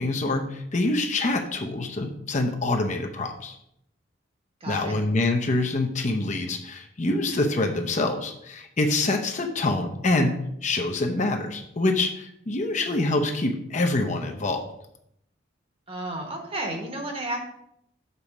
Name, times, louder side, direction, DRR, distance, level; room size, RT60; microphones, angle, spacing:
voice 1, 0.0-3.6 4.7-10.4 10.6-14.6, left 2 dB, 40° left, 3 dB, 0.7 m, -25 dB
voice 2, 4.6-5.0 15.9-17.4, right 1 dB, 30° right, 3 dB, 1.2 m, -32 dB
6.8 x 4.2 x 5.9 m, 0.76 s
head